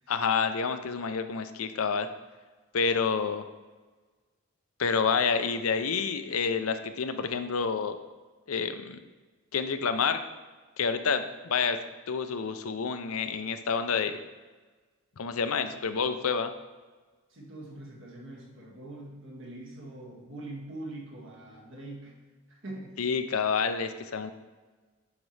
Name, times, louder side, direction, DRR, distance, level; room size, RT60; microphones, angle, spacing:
voice 1, 0.1-2.1 2.7-3.5 4.8-8.0 8.5-9.0 9.5-10.2 10.8-14.2 15.2-16.5 23.0-24.3, left 5 dB, 90° left, 9 dB, 0.6 m, -28 dB
voice 2, 17.3-22.2 22.5-23.0, right 1 dB, 65° right, -2 dB, 1.9 m, -43 dB
9.4 x 6.0 x 3.3 m, 1.3 s
head